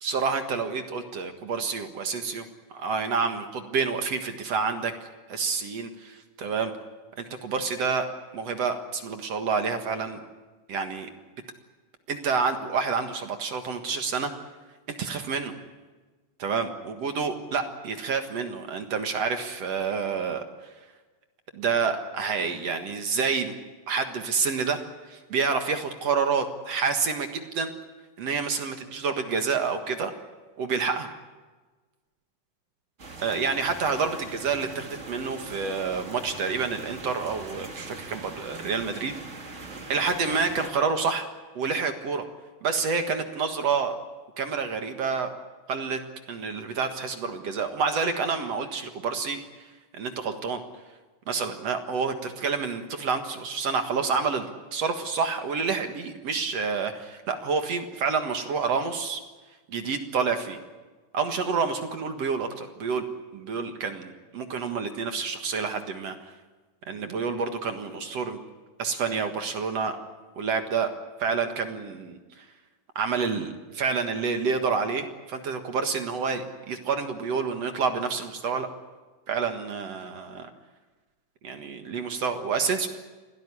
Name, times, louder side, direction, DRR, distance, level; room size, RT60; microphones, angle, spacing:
voice 1, 0.0-4.9 5.3-6.7 7.2-8.1 8.3-10.2 10.7-11.1 12.1-14.3 15.0-15.5 16.4-20.4 21.5-23.6 23.9-27.7 28.2-30.1 30.6-31.1 33.2-39.1 39.5-41.3 41.6-42.3 42.6-44.0 44.4-45.3 45.7-46.0 46.3-49.4 49.9-50.6 51.3-59.2 59.7-60.6 61.1-63.1 63.3-66.3 66.9-68.4 68.8-70.0 70.4-70.9 71.2-72.5 73.0-78.7 79.3-80.5 81.4-82.9, right 5 dB, 55° right, 6 dB, 2.3 m, -28 dB
sound 1, 33.0-40.7, right 3 dB, 25° right, 1.7 m, -41 dB
25.5 x 17.0 x 9.9 m, 1.3 s
omnidirectional pair, 4.1 m